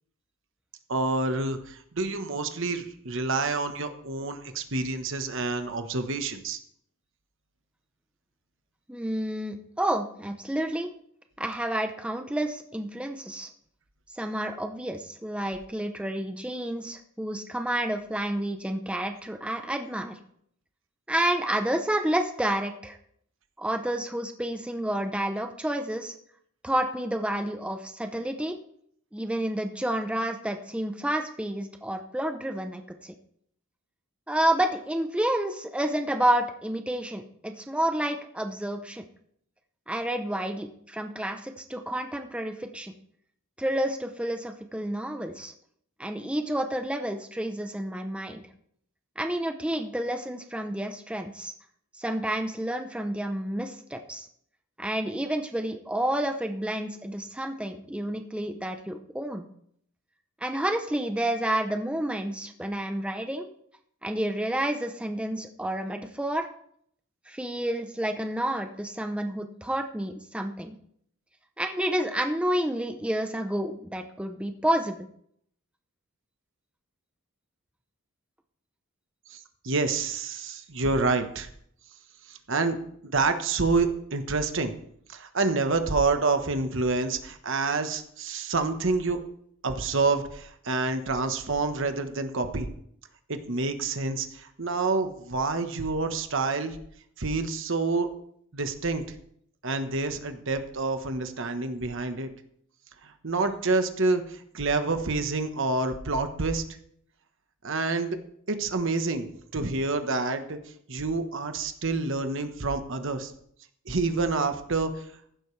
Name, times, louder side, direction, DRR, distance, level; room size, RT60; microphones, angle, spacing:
voice 1, 0.9-6.6 79.3-79.4 79.6-81.5 82.3-84.7 85.1-89.2 89.6-92.7 93.3-96.8 97.2-98.1 98.5-99.0 99.6-102.3 103.0-106.6 107.6-108.2 108.5-109.3 109.5-110.6 110.9-113.3 113.9-115.1, right 3 dB, 60° right, 7 dB, 1.2 m, -28 dB
voice 2, 8.9-10.9 11.4-13.5 14.1-20.2 21.1-23.0 23.6-26.1 26.6-28.6 29.1-33.1 34.3-39.0 39.9-42.9 43.6-45.5 46.0-48.5 49.2-51.5 52.0-54.3 54.8-59.5 60.4-63.5 64.0-66.5 67.3-70.8 71.6-75.1, right 1 dB, 5° right, 6 dB, 0.7 m, -30 dB
15.0 x 11.5 x 3.3 m, 0.67 s
head